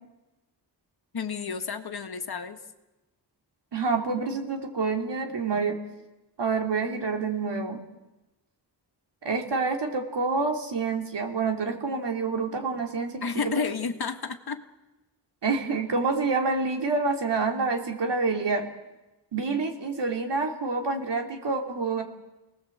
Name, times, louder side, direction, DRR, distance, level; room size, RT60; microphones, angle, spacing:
voice 1, 1.1-2.6 13.2-14.6, left 5 dB, 60° left, 6 dB, 1.7 m, -31 dB
voice 2, 3.7-5.8 6.4-7.8 9.2-13.5 15.4-18.7 19.3-22.0, right 4 dB, 75° right, 3 dB, 3.2 m, -27 dB
28.5 x 19.0 x 7.9 m, 1.1 s
wide cardioid pair, 125°, 42 cm